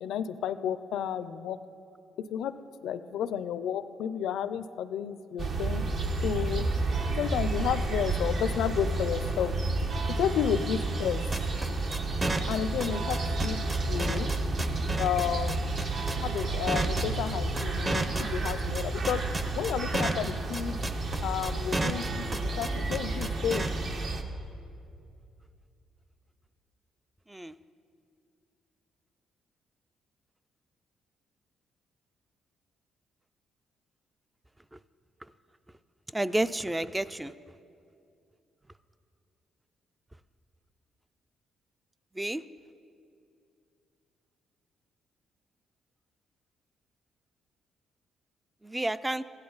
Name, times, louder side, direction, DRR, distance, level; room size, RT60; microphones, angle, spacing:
voice 1, 0.0-1.6 2.2-2.5 2.8-5.8 6.2-6.7 7.1-9.5 10.1-11.2 12.5-13.6 13.8-14.3 15.0-15.8 16.2-19.2 19.5-20.8 21.2-23.7, left 9 dB, 80° left, 13 dB, 0.5 m, -32 dB
sound 1, 5.4-24.2, right 2 dB, 55° right, 1.0 m, -31 dB
sound 2, 11.3-23.7, right 2 dB, 30° right, 0.8 m, -31 dB
voice 2, 36.1-37.3 42.2-42.4 48.6-49.2, right 1 dB, 10° right, 14 dB, 0.4 m, -30 dB
16.0 x 10.5 x 4.0 m, 2.6 s
cardioid pair, 90°, 0 cm